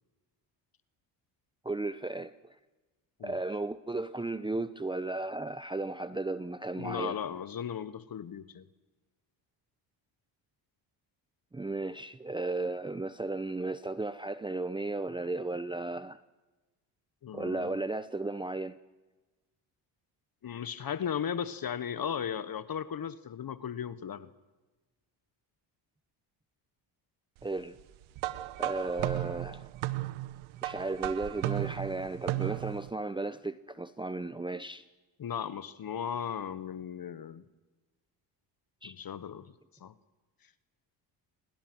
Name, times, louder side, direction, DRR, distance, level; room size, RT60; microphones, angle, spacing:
voice 1, 1.6-2.6 3.2-7.2 11.5-16.2 17.3-18.8 27.4-27.8 28.6-29.7 30.6-34.9 38.8-39.0, right 2 dB, 10° right, 0.8 m, -35 dB
voice 2, 6.8-8.7 17.2-17.8 20.4-24.3 35.2-37.4 38.8-39.5 39.8-39.9, left 8 dB, 45° left, 1.3 m, -36 dB
sound 1, 28.2-32.9, right 16 dB, 75° right, 1.1 m, -35 dB
28.5 x 26.0 x 6.2 m
supercardioid pair, 65°, 49 cm